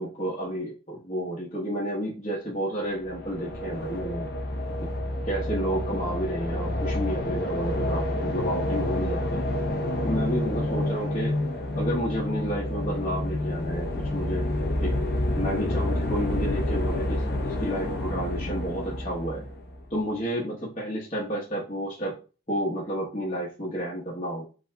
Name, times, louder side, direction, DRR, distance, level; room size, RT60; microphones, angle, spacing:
voice 1, 0.0-4.3 4.8-4.9 5.2-9.4 10.0-11.4 11.7-14.5 14.8-14.9 15.4-19.4 19.9-22.2 22.5-24.4, equal, 35° left, -6 dB, 1.0 m, -31 dB
sound 1, 2.9-19.9, left 1 dB, 55° left, 0.7 m, -29 dB
8.2 x 2.8 x 2.2 m, 0.35 s
head